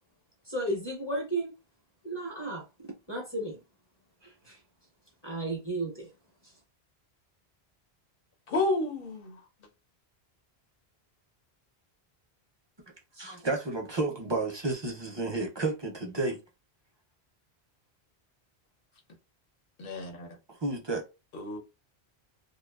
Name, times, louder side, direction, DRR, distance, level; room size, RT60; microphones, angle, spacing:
voice 1, 0.5-1.5 2.0-2.6 3.1-3.6 4.2-4.6 5.2-6.1, right 2 dB, 25° left, 0.7 m, -33 dB
voice 2, 8.5-9.4 19.8-20.3 21.3-21.6, left 2 dB, 60° left, 0.9 m, -30 dB
voice 3, 13.2-16.4 20.5-21.0, right 2 dB, 35° right, 0.4 m, -31 dB
2.5 x 2.2 x 2.3 m
omnidirectional pair, 1.1 m